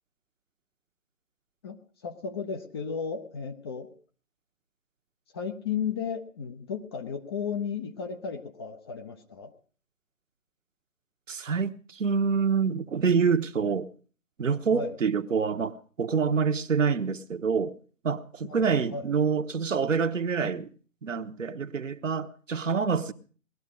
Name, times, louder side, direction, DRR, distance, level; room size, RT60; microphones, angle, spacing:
voice 1, 1.6-3.9 5.3-9.5 13.6-13.8 14.7-15.0 18.4-19.1 20.4-20.5, left 6 dB, 20° left, 0.7 m, -34 dB
voice 2, 11.3-13.9 14.4-17.7 18.0-20.7 21.0-23.1, right 5 dB, 70° right, 1.2 m, -26 dB
19.0 x 12.5 x 5.0 m
figure-of-eight pair, 140°, 40 cm